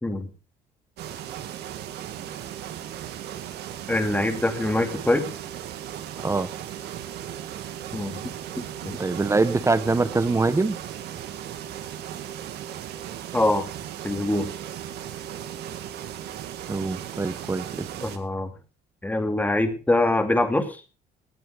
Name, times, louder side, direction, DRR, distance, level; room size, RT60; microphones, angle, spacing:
sound 1, 1.0-18.2, right 10 dB, 80° right, 2.3 m, -36 dB
voice 1, 3.9-5.3 7.9-8.2 8.6-9.0 13.3-13.6 14.0-14.5 18.0-18.5 19.0-20.8, left 2 dB, 10° left, 7 dB, 2.6 m, -24 dB
voice 2, 9.0-10.8 16.7-17.9, right 3 dB, 15° right, 14 dB, 0.9 m, -23 dB
19.0 x 9.3 x 5.1 m, 0.36 s
cardioid pair, 110°, 17 cm